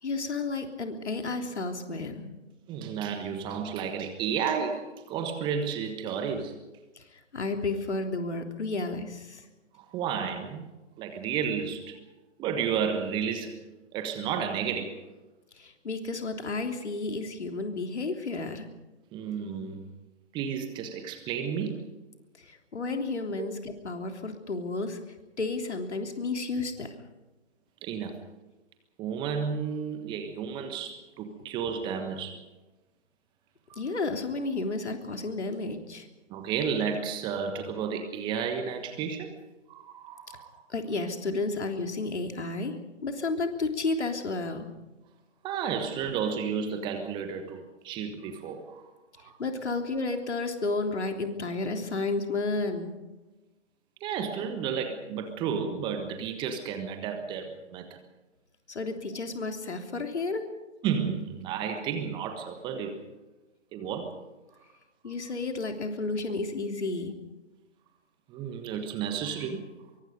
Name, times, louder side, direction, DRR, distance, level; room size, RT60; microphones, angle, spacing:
voice 1, 0.0-2.3 7.0-7.1 7.3-9.4 15.6-18.7 22.4-25.0 25.4-26.9 33.8-36.1 40.7-42.7 43.0-44.7 49.4-52.9 58.7-60.5 65.0-67.1, left 3 dB, 65° left, 5 dB, 3.4 m, -32 dB
voice 2, 2.7-6.5 9.8-10.6 11.0-12.0 12.4-13.6 13.9-15.0 19.1-19.9 20.3-21.8 23.4-23.5 27.8-28.2 29.0-32.4 33.7-33.8 36.3-39.3 39.7-40.6 45.4-48.9 49.2-49.3 54.0-58.0 60.8-63.0 63.7-64.2 68.3-69.6, right 7 dB, 15° right, 7 dB, 1.3 m, -32 dB
23.5 x 23.5 x 5.3 m, 1.1 s
figure-of-eight pair, 140°, 36 cm